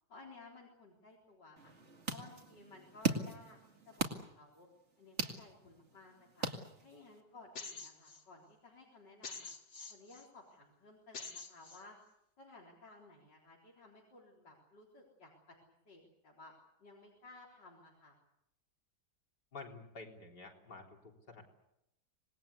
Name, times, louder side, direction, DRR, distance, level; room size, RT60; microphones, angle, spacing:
voice 1, 0.1-1.7 2.1-3.6 3.9-4.7 5.0-6.5 6.8-9.5 9.9-12.0 12.4-15.6 15.9-16.5 16.8-18.2, left 3 dB, 90° left, -2 dB, 4.6 m, -57 dB
sound 1, 1.6-7.2, right 4 dB, 40° right, 2.5 m, -40 dB
sound 2, 7.5-8.2 9.2-10.2 11.1-11.8, left 4 dB, 40° left, 2.2 m, -47 dB
voice 2, 19.5-21.4, left 3 dB, 75° left, 2 dB, 4.4 m, -50 dB
26.5 x 20.0 x 8.3 m, 0.83 s
omnidirectional pair, 1.8 m